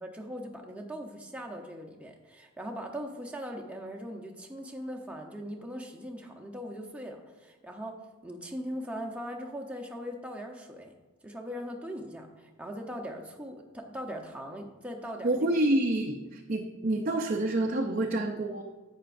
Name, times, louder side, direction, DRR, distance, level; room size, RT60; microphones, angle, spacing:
voice 1, 0.0-10.9 11.2-15.5, equal, 5° right, 1 dB, 0.8 m, -40 dB
voice 2, 15.2-18.6, right 1 dB, 45° right, 2 dB, 0.6 m, -28 dB
10.5 x 8.0 x 2.6 m, 1.2 s
head